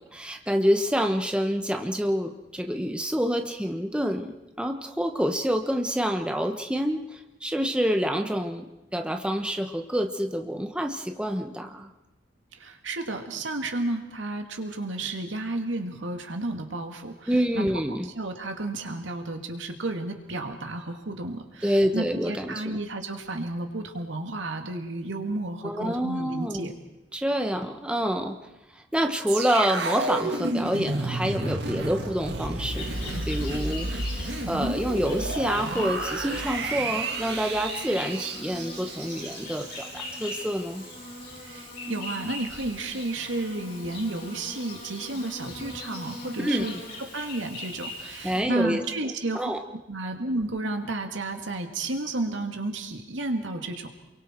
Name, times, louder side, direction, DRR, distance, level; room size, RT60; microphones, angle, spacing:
voice 1, 0.0-11.9 17.3-18.1 21.6-22.8 25.6-26.7 27.1-28.4 28.9-40.9 46.4-46.7 48.2-48.8 49.3-49.6, equal, 5° right, 5 dB, 1.0 m, -27 dB
voice 2, 12.5-17.7 18.0-26.8 41.4-46.8 47.1-49.4 49.9-53.9, right 2 dB, 85° right, 4 dB, 2.4 m, -32 dB
sound 1, 29.3-40.5 40.8-40.9, right 2 dB, 60° right, 2.0 m, -31 dB
Insect, 32.6-48.4, left 2 dB, 50° left, 7.2 m, -40 dB
29.0 x 23.0 x 4.5 m, 0.97 s
head